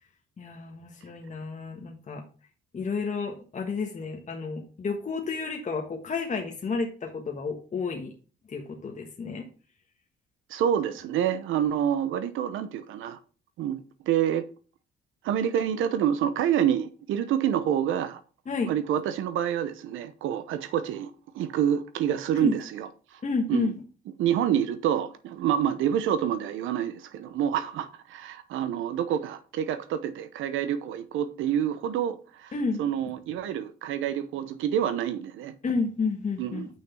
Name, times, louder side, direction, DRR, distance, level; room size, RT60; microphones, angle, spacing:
voice 1, 0.4-2.2 2.7-8.1 8.5-9.5 18.5-18.7 22.3-22.6 23.2-23.7 32.5-32.8 35.6-36.6, left 4 dB, 35° left, 1.3 m, -31 dB
voice 2, 10.5-13.2 13.6-14.4 15.2-18.2 18.6-22.9 23.5-23.7 24.2-32.5 32.8-35.5 36.4-36.7, right 9 dB, 85° right, 0.9 m, -27 dB
6.3 x 5.8 x 5.7 m
cardioid pair, 90°, 20 cm